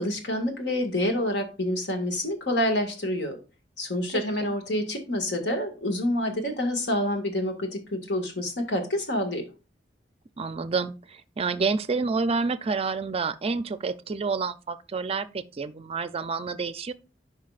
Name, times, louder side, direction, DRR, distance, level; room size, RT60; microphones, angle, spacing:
voice 1, 0.0-3.4 3.8-9.4, left 1 dB, 75° left, 1.8 m, -27 dB
voice 2, 4.1-4.5 10.4-16.9, right 4 dB, 35° right, 0.4 m, -29 dB
11.5 x 5.0 x 2.4 m
head